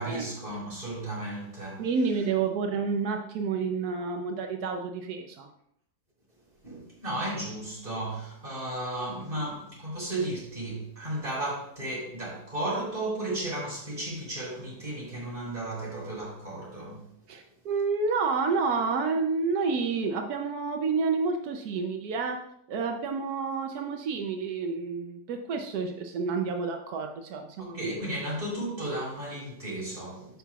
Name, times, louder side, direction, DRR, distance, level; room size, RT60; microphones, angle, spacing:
voice 1, 0.0-1.9 6.6-17.1 27.6-30.4, right 1 dB, 35° right, 3.7 m, -34 dB
voice 2, 1.8-5.5 9.3-9.5 17.3-22.4 22.7-28.0, right 4 dB, 90° right, 1.2 m, -29 dB
14.0 x 5.7 x 2.4 m
omnidirectional pair, 1.6 m